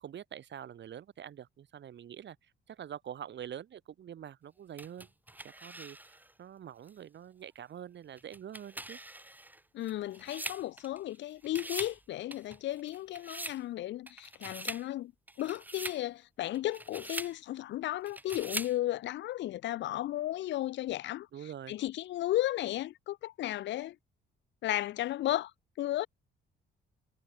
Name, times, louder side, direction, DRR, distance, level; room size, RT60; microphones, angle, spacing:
voice 1, 0.0-5.1 5.4-9.0 21.3-21.7, right 9 dB, 65° right, 6.0 m, -45 dB
sound 1, 4.8-6.3 6.9-7.0 8.2-11.2 11.4-12.0 12.3-13.6 14.1-14.9 15.3-16.0 16.5-17.4 18.1-18.8, right 1 dB, 10° right, 2.3 m, -42 dB
voice 2, 9.7-15.1 15.4-21.3 21.7-24.0 24.6-25.5 25.8-26.1, left 14 dB, 65° left, 0.4 m, -34 dB
cardioid pair, 90°, 20 cm